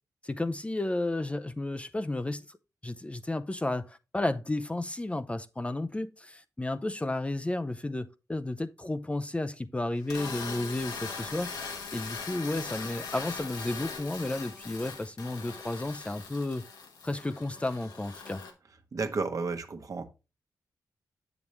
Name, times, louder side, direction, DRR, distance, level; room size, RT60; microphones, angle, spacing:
voice 1, 0.2-2.6 2.8-16.6 17.0-18.4, left 2 dB, 15° left, 0.5 m, -33 dB
sound 1, 10.0-18.5, left 5 dB, 90° left, 1.4 m, -40 dB
voice 2, 18.9-20.1, right 4 dB, 55° right, 1.1 m, -32 dB
7.1 x 7.0 x 3.1 m
cardioid pair, 60°, 7 cm